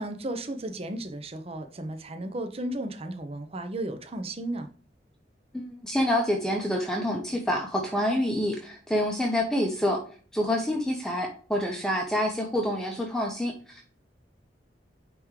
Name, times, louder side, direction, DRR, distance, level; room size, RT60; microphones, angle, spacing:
voice 1, 0.0-4.7, right 1 dB, 35° right, 0.8 m, -34 dB
voice 2, 5.5-10.0 10.3-13.8, left 1 dB, 5° left, 0.8 m, -27 dB
9.2 x 3.6 x 3.2 m
head